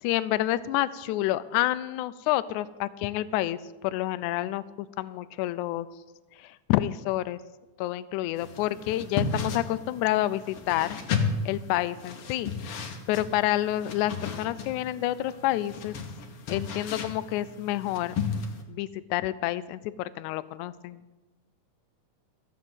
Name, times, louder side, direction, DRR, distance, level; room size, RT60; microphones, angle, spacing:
voice 1, 0.0-4.6 5.0-5.9 6.4-7.4 7.8-11.0 11.4-15.9 16.5-18.1 18.7-21.0, left 14 dB, 80° left, 15 dB, 1.8 m, -29 dB
sound 1, 8.4-18.6, left 5 dB, 60° left, 1.6 m, -34 dB
13.5 x 7.2 x 7.9 m, 1.1 s
omnidirectional pair, 3.8 m